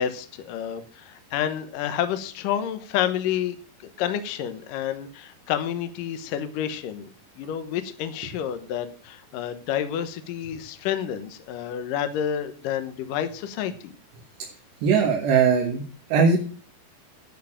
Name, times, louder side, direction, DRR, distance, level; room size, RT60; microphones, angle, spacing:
voice 1, 0.0-3.6 4.0-7.1 7.4-13.9, left 9 dB, 70° left, 9 dB, 2.3 m, -29 dB
voice 2, 14.8-15.8 16.1-16.4, right 5 dB, 85° right, 0 dB, 3.8 m, -19 dB
11.5 x 6.6 x 7.3 m, 0.42 s
omnidirectional pair, 4.8 m